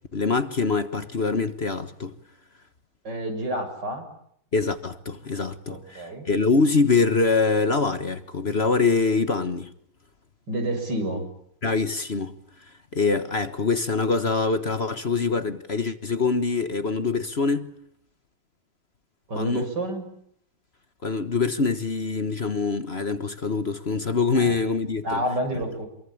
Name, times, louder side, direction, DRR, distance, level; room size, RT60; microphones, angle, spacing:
voice 1, 0.1-2.1 4.5-9.7 11.6-12.3 12.9-17.7 19.3-19.7 21.0-25.2, left 4 dB, 40° left, 1.5 m, -24 dB
voice 2, 3.0-4.0 5.7-6.3 10.5-11.3 19.3-20.1 24.3-24.6 25.0-25.9, right 1 dB, 80° right, 7.6 m, -29 dB
28.0 x 22.5 x 8.8 m
omnidirectional pair, 1.9 m